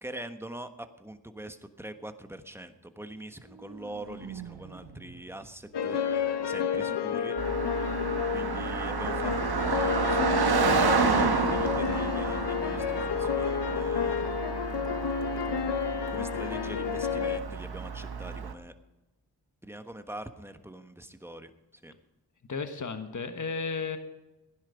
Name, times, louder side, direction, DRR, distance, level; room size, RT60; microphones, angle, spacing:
voice 1, 0.0-6.0 6.5-7.3 8.3-14.3 16.1-18.7 19.6-21.5 21.8-21.9, right 1 dB, 5° right, 8 dB, 1.3 m, -43 dB
sound 1, 3.2-7.2, right 7 dB, 85° right, 1.4 m, -48 dB
sound 2, 5.7-17.4, left 7 dB, 85° left, 0.9 m, -30 dB
Car passing by, 7.4-18.5, right 5 dB, 65° right, 1.3 m, -30 dB
voice 2, 22.5-24.0, left 5 dB, 50° left, 8 dB, 1.4 m, -33 dB
16.0 x 10.5 x 5.1 m, 1.0 s
cardioid pair, 45°, 40 cm